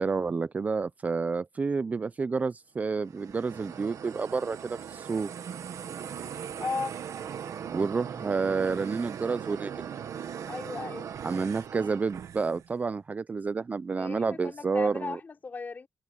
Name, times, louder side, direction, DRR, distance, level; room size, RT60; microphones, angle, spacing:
voice 1, 0.0-5.3 7.7-9.8 11.2-15.2, right 4 dB, 30° right, 0.4 m, -29 dB
sound 1, 2.9-12.7, right 8 dB, 75° right, 1.3 m, -39 dB
voice 2, 6.6-7.0 10.5-11.1 14.0-15.9, left 4 dB, 35° left, 3.7 m, -36 dB
wide cardioid pair, 165°, 5 cm